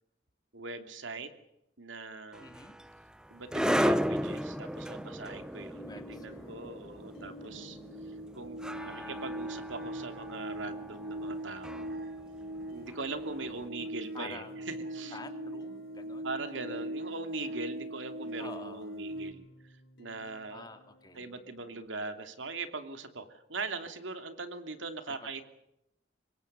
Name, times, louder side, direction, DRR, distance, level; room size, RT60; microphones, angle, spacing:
voice 1, 0.5-1.3 1.8-2.5 3.3-7.8 8.3-12.0 12.7-15.2 16.2-19.5 20.0-20.7 21.2-25.4, right 3 dB, 90° right, 8 dB, 2.8 m, -41 dB
sound 1, 2.3-13.5, equal, 5° right, 0.8 m, -35 dB
voice 2, 2.4-2.8 5.8-6.6 8.7-9.3 14.1-16.3 18.4-19.0 20.5-21.3 25.1-25.4, left 2 dB, 20° left, 6 dB, 2.6 m, -48 dB
sound 2, 5.7-21.8, left 1 dB, 75° left, 3.2 m, -55 dB
sound 3, 5.7-5.8 6.1-19.3, right 1 dB, 50° right, 1.4 m, -41 dB
25.5 x 22.5 x 6.9 m, 0.82 s
head